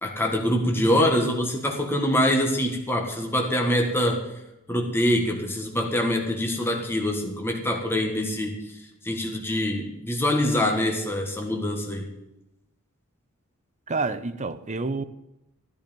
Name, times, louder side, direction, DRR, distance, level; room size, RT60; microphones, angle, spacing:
voice 1, 0.0-4.3 4.7-8.6 9.0-12.1, equal, 10° left, 1.7 m, -24 dB
voice 2, 13.9-15.0, right 3 dB, 35° right, 0.7 m, -28 dB
15.0 x 10.5 x 5.4 m
head